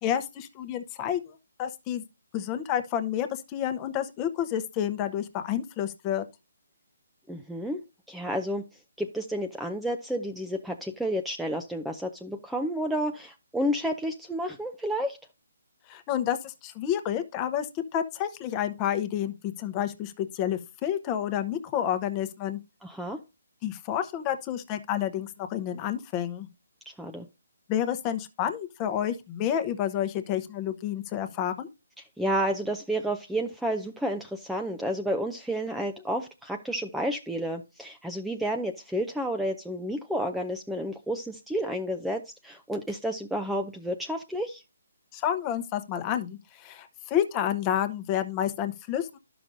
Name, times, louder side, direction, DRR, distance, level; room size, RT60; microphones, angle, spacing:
voice 1, 0.0-2.0 2.3-6.3 15.9-22.6 23.6-26.5 27.7-31.7 45.1-49.2, left 10 dB, 25° left, 0.9 m, -30 dB
voice 2, 7.3-7.8 8.1-8.6 9.0-15.2 22.8-23.2 27.0-27.3 32.0-44.6, equal, ahead, 0.5 m, -31 dB
12.0 x 6.0 x 2.6 m
hypercardioid pair, 150°, 0 cm